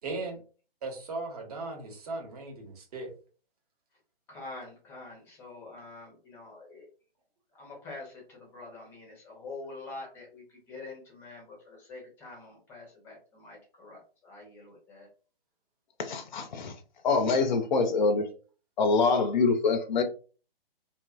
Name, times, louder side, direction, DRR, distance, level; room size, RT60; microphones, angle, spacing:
voice 1, 0.0-0.4 0.8-3.1, right 3 dB, 40° right, 1.1 m, -37 dB
voice 2, 4.3-6.9 7.6-15.1, left 3 dB, 10° left, 0.6 m, -46 dB
voice 3, 16.0-16.7 17.0-18.3 18.8-20.0, left 4 dB, 50° left, 0.5 m, -25 dB
2.7 x 2.5 x 2.4 m
figure-of-eight pair, 140°, 29 cm